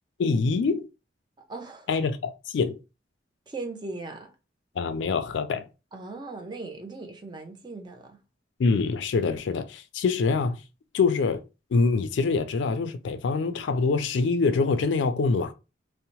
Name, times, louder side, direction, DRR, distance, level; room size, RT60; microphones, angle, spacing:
voice 1, 0.2-0.9 1.9-2.8 4.8-5.7 8.6-10.6 10.9-11.4 11.7-15.5, left 4 dB, 75° left, 0.3 m, -25 dB
voice 2, 1.5-1.9 3.5-4.3 5.9-8.2, right 3 dB, 25° right, 0.4 m, -38 dB
2.7 x 2.1 x 2.9 m
head